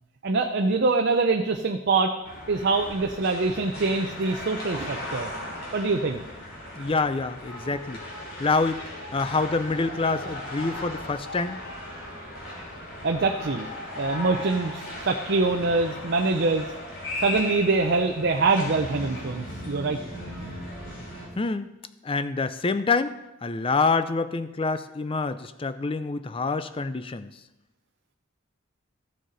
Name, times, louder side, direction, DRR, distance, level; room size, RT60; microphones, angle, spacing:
voice 1, 0.2-2.2 2.5-5.3 5.7-6.2 13.0-13.7 14.0-16.6 17.2-20.0, right 3 dB, 55° right, 4 dB, 0.6 m, -24 dB
sound 1, 2.2-21.3, left 1 dB, 75° left, 3.7 m, -37 dB
voice 2, 6.8-8.0 8.4-8.8 9.1-11.6 21.4-21.7 22.0-23.1 23.4-27.3, left 4 dB, 25° left, 12 dB, 0.5 m, -26 dB
15.0 x 6.5 x 4.1 m, 0.96 s
head